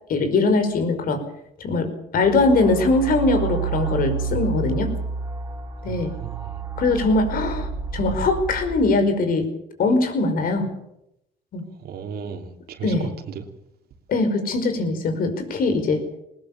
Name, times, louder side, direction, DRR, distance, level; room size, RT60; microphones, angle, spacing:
voice 1, 0.1-1.2 1.6-1.9 2.1-4.9 5.8-6.1 6.8-9.5 9.8-10.7 11.5-11.6 12.8-13.1 14.1-16.0, left 3 dB, 60° left, 5.3 m, -21 dB
sound 1, 2.2-8.8, right 6 dB, 20° right, 4.1 m, -29 dB
voice 2, 5.9-6.5 11.8-13.5, right 6 dB, 65° right, 3.0 m, -35 dB
20.0 x 19.0 x 7.2 m
cardioid pair, 110°, 17 cm